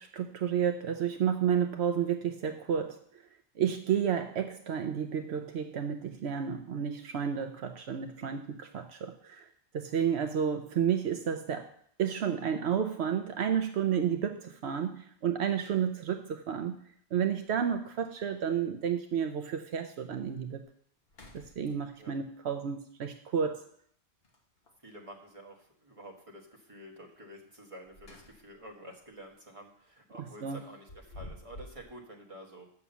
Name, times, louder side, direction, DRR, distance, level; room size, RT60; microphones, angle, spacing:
voice 1, 0.0-3.0 3.6-9.5 9.7-11.7 12.0-16.8 17.1-20.6 21.3-23.6 30.4-30.6, right 8 dB, 80° right, 7 dB, 0.9 m, -31 dB
sound 1, 15.4-15.5 17.1-17.2 17.6-17.7 18.0-18.5 19.1-19.2 19.7-19.8 20.2-20.6 21.0-22.1 24.2-24.9 27.6-28.7 29.0-29.3 30.6-31.9, left 1 dB, 65° left, 1.6 m, -51 dB
voice 2, 24.8-32.6, right 1 dB, 30° right, 0 dB, 1.6 m, -49 dB
7.3 x 6.1 x 6.9 m, 0.63 s
omnidirectional pair, 1.1 m